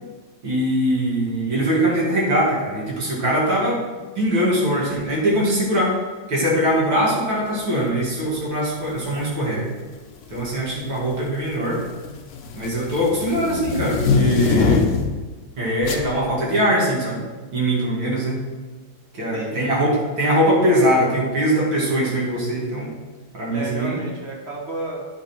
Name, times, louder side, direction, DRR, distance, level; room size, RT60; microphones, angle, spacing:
voice 1, 0.4-3.8 4.2-5.9 6.3-9.7 10.3-11.8 12.5-14.8 15.6-17.2 17.5-18.4 19.1-22.9 23.3-24.0, equal, 70° right, -5 dB, 3.0 m, -21 dB
sound 1, 8.9-9.2 10.2-10.6 11.0-15.2 15.8-16.1, left 5 dB, 65° left, 0.7 m, -23 dB
voice 2, 19.2-19.7 23.5-25.1, right 2 dB, 40° right, -1 dB, 1.2 m, -32 dB
9.3 x 5.3 x 4.5 m, 1.3 s
omnidirectional pair, 2.2 m